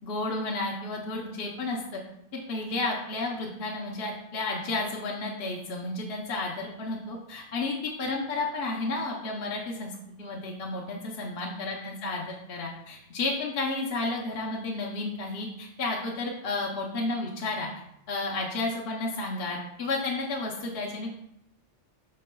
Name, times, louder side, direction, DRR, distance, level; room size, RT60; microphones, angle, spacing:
voice 1, 0.0-2.0 2.5-17.7 18.1-21.2, left 2 dB, 55° left, -2 dB, 1.1 m, -32 dB
12.0 x 4.2 x 2.3 m, 0.78 s
omnidirectional pair, 1.2 m